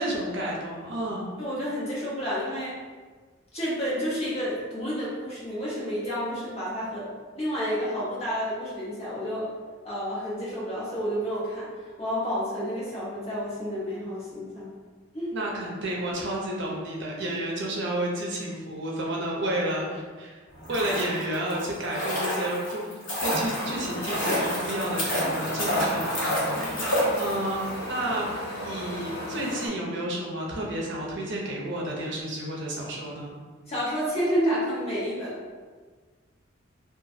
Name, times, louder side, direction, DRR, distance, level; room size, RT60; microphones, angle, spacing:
voice 1, 0.0-1.3 15.3-20.4 20.7-22.9 23.2-27.6 27.9-28.3 28.6-33.4, right 1 dB, 60° right, -2 dB, 0.6 m, -31 dB
voice 2, 1.4-2.8 3.5-9.5 9.8-11.7 12.0-14.7 15.1-15.3 33.7-35.4, equal, 30° left, -8 dB, 1.0 m, -30 dB
sound 1, 20.5-27.7 27.9-28.0, equal, 70° left, 0.9 m, -29 dB
Wind, 23.4-29.7, equal, 55° left, 0.4 m, -36 dB
2.9 x 2.3 x 2.6 m, 1.4 s
head